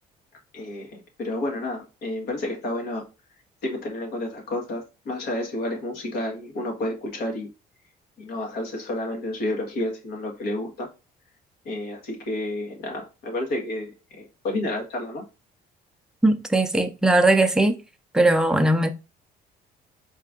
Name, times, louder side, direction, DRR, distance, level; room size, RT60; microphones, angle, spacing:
voice 1, 0.5-3.0 3.6-7.5 8.2-10.9 11.6-15.2, left 1 dB, 75° left, 1.6 m, -30 dB
voice 2, 16.2-17.8 18.1-18.9, right 2 dB, 5° right, 0.6 m, -19 dB
4.5 x 2.6 x 3.7 m
cardioid pair, 110°, 17 cm